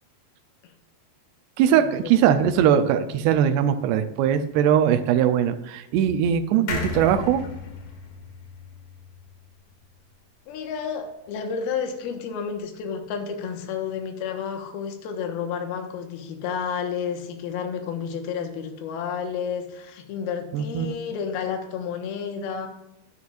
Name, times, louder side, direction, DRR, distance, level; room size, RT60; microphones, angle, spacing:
voice 1, 1.6-7.4 20.5-21.0, right 9 dB, 90° right, 7 dB, 2.8 m, -21 dB
sound 1, 6.7-10.2 10.5-10.6 10.8-10.9, left 4 dB, 55° left, 2.8 m, -35 dB
voice 2, 10.5-22.7, left 6 dB, 75° left, 5 dB, 3.0 m, -31 dB
12.5 x 9.8 x 2.5 m, 0.93 s
omnidirectional pair, 4.7 m